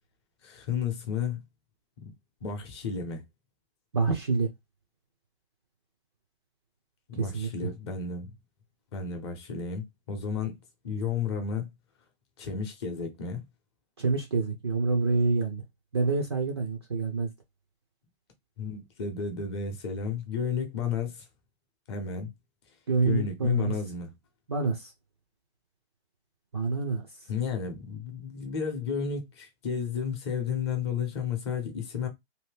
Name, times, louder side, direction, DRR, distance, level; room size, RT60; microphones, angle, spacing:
voice 1, 0.4-1.4 2.0-2.1 2.4-3.2 7.1-8.3 8.9-10.5 10.8-11.7 12.4-13.4 18.6-21.3 21.9-22.3 23.0-24.1 27.3-32.1, left 6 dB, 25° left, 0.8 m, -32 dB
voice 2, 3.9-4.5 7.2-7.7 14.0-15.6 15.9-17.3 22.9-23.7 24.5-24.9 26.5-27.0, right 4 dB, 25° right, 0.5 m, -27 dB
2.8 x 2.6 x 3.3 m
hypercardioid pair, 160°, 33 cm